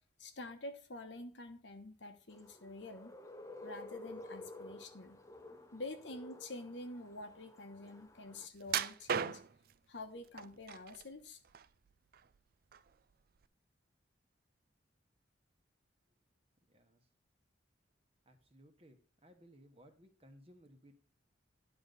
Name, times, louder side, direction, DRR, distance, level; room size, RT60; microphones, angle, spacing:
voice 1, 0.2-3.1 3.6-5.2 5.7-9.4 9.9-11.4, left 2 dB, 65° left, 7 dB, 1.1 m, -48 dB
sound 1, 2.3-8.5, left 2 dB, 15° left, 0.6 m, -52 dB
sound 2, 8.7-9.7 10.4-11.0 11.4-12.4 12.7-12.9 13.4-13.5, right 7 dB, 50° right, 0.4 m, -37 dB
voice 2, 16.7-17.0 18.3-21.0, equal, 30° right, 6 dB, 1.1 m, -61 dB
10.5 x 4.0 x 6.7 m, 0.42 s
head